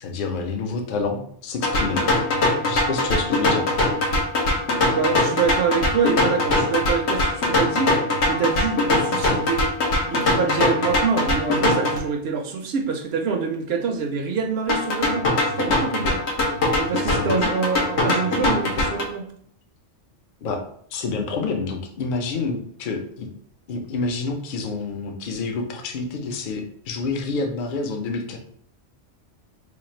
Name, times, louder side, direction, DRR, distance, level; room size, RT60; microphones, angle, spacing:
voice 1, 0.0-2.0 2.7-3.7 17.0-17.4 20.4-20.6 20.9-23.3 23.7-28.4, left 4 dB, 55° left, 4 dB, 0.7 m, -28 dB
sound 1, 1.6-12.0 14.7-19.0, left 2 dB, 70° left, 1.1 m, -22 dB
voice 2, 4.9-8.0 8.3-9.7 10.1-16.2 16.8-19.3, right 5 dB, 65° right, 4 dB, 0.8 m, -25 dB
3.2 x 2.4 x 4.1 m, 0.64 s
omnidirectional pair, 1.2 m